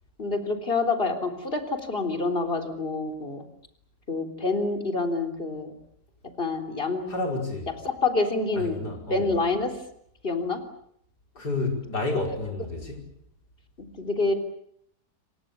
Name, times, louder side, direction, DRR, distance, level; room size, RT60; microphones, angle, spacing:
voice 1, 0.2-3.5 4.1-5.7 6.4-7.1 7.8-9.9 10.2-10.6 12.2-12.4 13.8-14.3, left 3 dB, 35° left, 3.9 m, -27 dB
voice 2, 7.1-7.7 8.6-9.3 11.4-13.0, left 2 dB, 80° left, 5.9 m, -30 dB
29.0 x 24.0 x 7.0 m
omnidirectional pair, 1.7 m